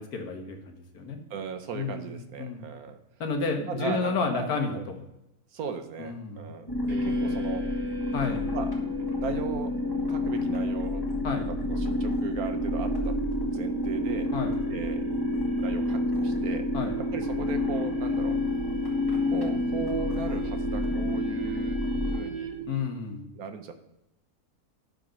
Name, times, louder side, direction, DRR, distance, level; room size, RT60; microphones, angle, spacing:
voice 1, 0.0-1.2 1.7-2.6 3.2-5.0 6.0-6.7 8.1-8.4 11.2-11.5 14.3-14.6 16.7-16.9 22.7-23.3, left 4 dB, 80° left, 4 dB, 1.8 m, -31 dB
voice 2, 1.3-3.0 3.7-4.5 4.7-4.8 5.5-7.6 8.5-8.7 9.2-9.8 10.1-11.0 11.7-13.2 13.5-14.3 14.7-15.1 15.6-16.7 17.0-18.4 19.3-21.8 22.1-22.6 23.3-23.7, right 6 dB, 70° right, 7 dB, 1.4 m, -37 dB
sound 1, 6.7-22.2, left 3 dB, 15° left, 1.7 m, -29 dB
sound 2, 6.9-22.8, right 8 dB, 35° right, 1.4 m, -36 dB
10.5 x 5.2 x 6.3 m, 0.92 s
omnidirectional pair, 1.6 m